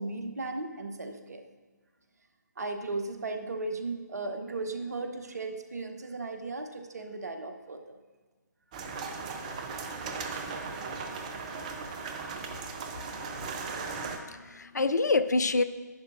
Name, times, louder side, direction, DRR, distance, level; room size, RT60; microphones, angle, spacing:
voice 1, 0.0-1.4 2.6-8.0, right 3 dB, 60° right, 7 dB, 0.8 m, -36 dB
sound 1, 8.7-14.2, right 4 dB, 25° right, 0.6 m, -37 dB
voice 2, 14.0-15.6, left 3 dB, 65° left, 13 dB, 0.4 m, -27 dB
11.0 x 9.0 x 2.5 m, 1.4 s
figure-of-eight pair, 140°, 10 cm